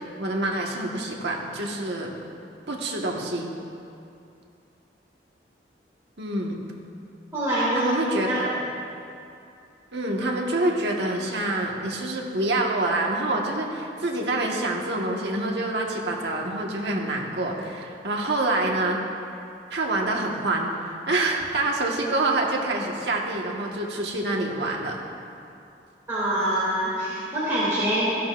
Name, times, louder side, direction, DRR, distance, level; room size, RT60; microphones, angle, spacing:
voice 1, 0.2-2.1 2.7-3.5 6.2-6.6 7.7-8.6 9.9-19.0 19.7-20.7 21.1-25.0, right 2 dB, 70° right, 0 dB, 1.5 m, -26 dB
voice 2, 7.3-8.4 26.1-28.1, right 1 dB, 15° right, -11 dB, 2.7 m, -25 dB
16.5 x 13.0 x 2.5 m, 2.6 s
head